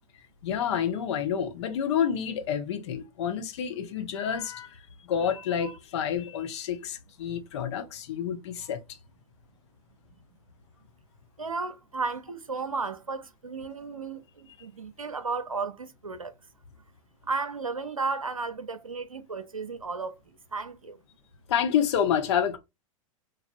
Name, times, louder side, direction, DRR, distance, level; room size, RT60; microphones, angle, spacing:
voice 1, 0.4-4.8 5.0-9.0 21.5-22.6, left 8 dB, 55° left, 0.6 m, -28 dB
voice 2, 11.4-16.3 17.2-21.0, right 4 dB, 90° right, 0.5 m, -34 dB
3.2 x 2.4 x 2.5 m
figure-of-eight pair, 95°, 17 cm